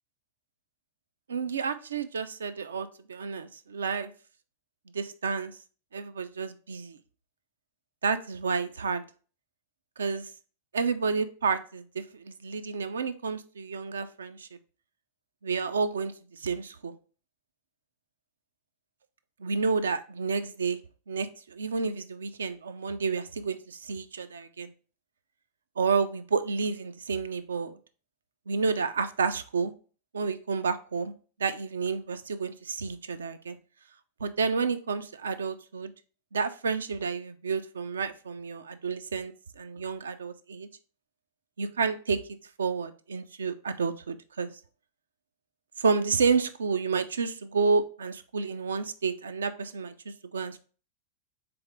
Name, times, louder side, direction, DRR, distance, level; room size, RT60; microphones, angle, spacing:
voice 1, 1.3-4.1 4.9-5.6 5.9-7.0 8.0-9.1 10.0-10.3 10.7-14.5 15.4-17.0 19.4-20.8 21.1-24.7 25.8-27.8 28.5-29.7 30.1-31.1 31.4-33.6 34.2-35.9 36.3-40.7 41.6-44.6 45.8-50.6, right 5 dB, 80° right, 11 dB, 0.4 m, -30 dB
3.7 x 3.4 x 3.5 m, 0.39 s
figure-of-eight pair, 95°, 0 cm